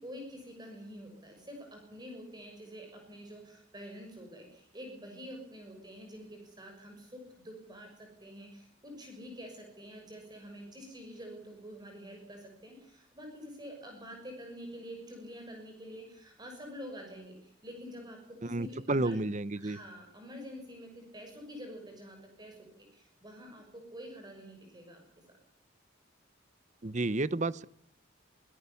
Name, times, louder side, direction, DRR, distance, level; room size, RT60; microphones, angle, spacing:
voice 1, 0.0-19.2 19.6-25.0, equal, 20° right, 2 dB, 6.6 m, -47 dB
voice 2, 18.4-19.8 26.8-27.6, right 2 dB, 40° right, 18 dB, 0.9 m, -31 dB
26.0 x 18.5 x 7.1 m, 0.69 s
head